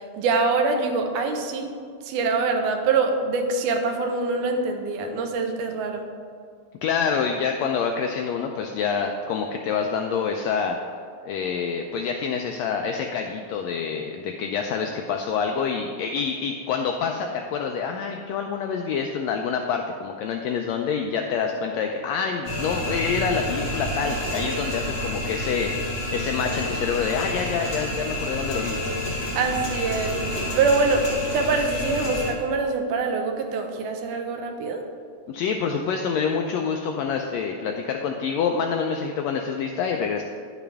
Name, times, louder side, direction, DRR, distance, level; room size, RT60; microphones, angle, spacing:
voice 1, 0.2-1.7 2.1-6.1 29.4-30.2 30.6-31.0 31.3-34.8, right 4 dB, 85° right, 5 dB, 2.3 m, -24 dB
voice 2, 6.8-10.8 11.2-25.7 26.1-28.8 35.3-40.2, left 6 dB, 85° left, 3 dB, 1.5 m, -27 dB
sound 1, 22.5-32.3, left 1 dB, 55° left, 2.7 m, -29 dB
9.7 x 7.1 x 3.4 m, 2.1 s
omnidirectional pair, 3.5 m